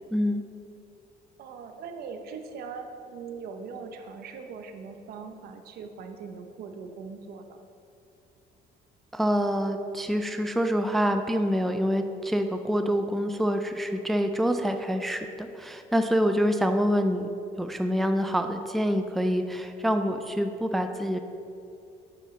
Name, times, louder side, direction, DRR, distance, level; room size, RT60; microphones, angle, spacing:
voice 1, 0.1-0.4 9.1-17.3 17.6-21.2, equal, ahead, 6 dB, 0.3 m, -26 dB
voice 2, 1.4-7.6, right 5 dB, 65° right, 6 dB, 0.8 m, -41 dB
9.7 x 6.5 x 3.2 m, 2.6 s
cardioid pair, 110°, 17 cm